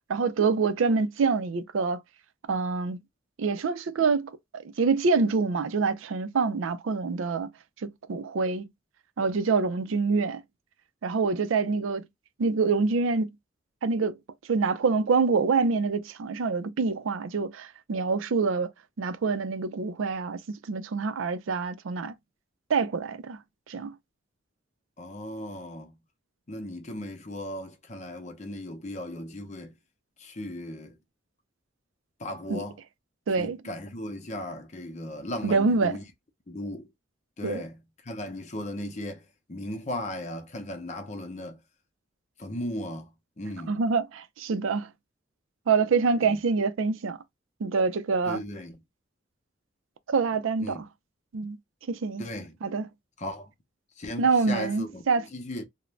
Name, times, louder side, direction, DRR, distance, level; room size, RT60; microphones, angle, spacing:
voice 1, 0.1-2.0 2.5-3.0 3.4-7.5 8.1-8.7 9.2-10.4 11.0-12.0 12.4-13.3 13.8-14.2 14.5-18.7 19.0-20.4 20.7-22.1 22.7-23.4 23.7-23.9 32.5-32.6 33.3-33.6 35.4-35.9 37.4-37.6 43.7-44.9 45.7-47.2 47.6-48.4 50.1-50.8 51.3-51.6 51.9-52.2 52.6-52.8 54.2-55.2, right 4 dB, 80° right, 0.4 m, -26 dB
voice 2, 25.0-26.0 26.5-29.8 30.2-31.0 32.2-32.8 33.4-36.0 36.5-36.9 37.4-41.6 42.4-43.8 46.2-46.4 48.3-48.8 50.6-50.8 52.2-52.6 53.2-53.5 54.0-55.6, left 1 dB, 35° left, 0.6 m, -37 dB
2.5 x 2.1 x 3.1 m
head